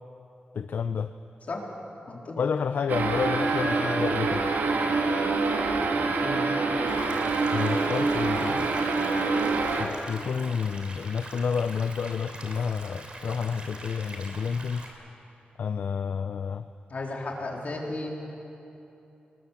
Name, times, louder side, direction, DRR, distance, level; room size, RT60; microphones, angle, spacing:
voice 1, 0.5-1.1 2.4-4.5 7.5-8.8 9.8-14.8 15.6-16.7, left 6 dB, 70° left, 10 dB, 0.6 m, -30 dB
sound 1, 2.9-9.8, right 3 dB, 85° right, 2.3 m, -26 dB
sound 2, 6.9-14.9, right 2 dB, 35° right, 3.2 m, -43 dB
voice 2, 16.9-18.1, left 2 dB, 50° left, 0 dB, 3.7 m, -34 dB
29.5 x 20.0 x 7.3 m, 2.9 s
wide cardioid pair, 145°, 3 cm